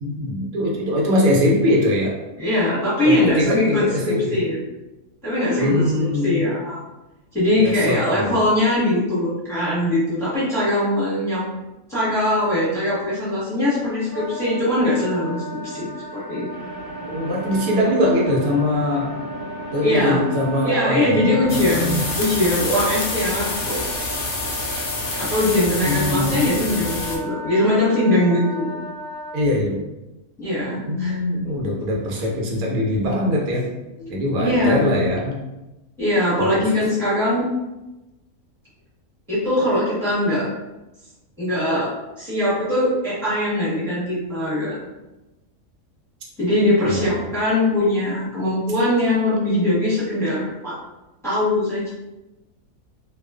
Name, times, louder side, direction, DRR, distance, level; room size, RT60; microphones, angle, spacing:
voice 1, 0.0-2.1 3.0-4.4 5.6-6.4 7.6-8.4 17.0-19.1 19.7-22.0 25.8-26.4 29.3-29.8 30.9-33.7 34.1-35.4 36.4-36.6 46.8-47.2, left 1 dB, 85° right, -2 dB, 1.1 m, -22 dB
voice 2, 2.4-4.6 5.2-6.8 7.3-11.4 11.9-16.5 19.8-20.2 20.6-23.8 25.2-28.7 30.4-31.2 34.0-34.1 34.4-34.9 36.0-37.5 39.3-40.5 41.4-41.9 42.2-44.8 46.4-50.8 51.2-51.9, left 1 dB, ahead, -10 dB, 0.9 m, -21 dB
Wind instrument woodwind instrument, 14.1-29.4, right 1 dB, 45° right, 0.9 m, -35 dB
sound 1, 16.5-25.7, right 1 dB, 65° right, 0.6 m, -38 dB
sound 2, 21.5-27.2, left 3 dB, 90° left, 0.4 m, -27 dB
2.4 x 2.3 x 2.3 m, 1.0 s
omnidirectional pair, 1.5 m